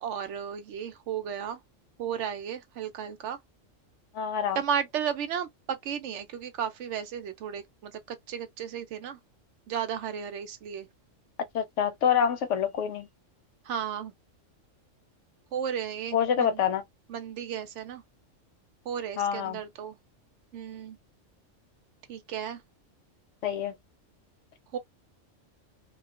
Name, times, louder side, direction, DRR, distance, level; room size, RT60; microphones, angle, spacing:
voice 1, 0.0-1.6 2.0-3.4 4.6-9.2 9.7-10.9 13.7-14.1 15.5-16.6 17.1-18.0 18.9-20.0 20.5-21.0 22.1-22.6 24.7-24.8, right 8 dB, 70° right, 0.8 m, -34 dB
voice 2, 4.1-4.6 11.5-13.1 16.1-16.8 19.2-19.6 23.4-23.8, left 8 dB, 70° left, 0.9 m, -26 dB
2.3 x 2.3 x 2.3 m
omnidirectional pair, 1.3 m